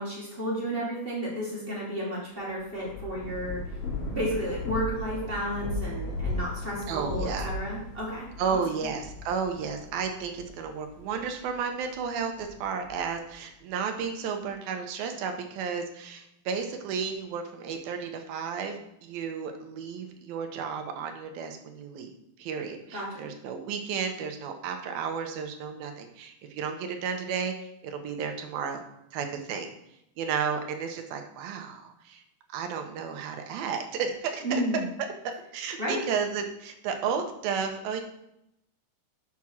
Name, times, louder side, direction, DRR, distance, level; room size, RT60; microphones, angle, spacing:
voice 1, 0.0-3.6 4.0-8.6 22.9-23.3 34.4-34.8 35.8-36.0, equal, 20° right, -5 dB, 1.6 m, -32 dB
Thunder / Rain, 2.5-11.4 12.0-13.3, left 2 dB, 75° left, 3.7 m, -36 dB
voice 2, 6.9-7.5 8.4-22.1 22.4-28.8 29.1-29.7 30.2-32.2 32.5-34.6 35.2-38.0, right 6 dB, 80° right, 5 dB, 2.6 m, -33 dB
7.1 x 5.9 x 6.2 m, 0.80 s
omnidirectional pair, 4.4 m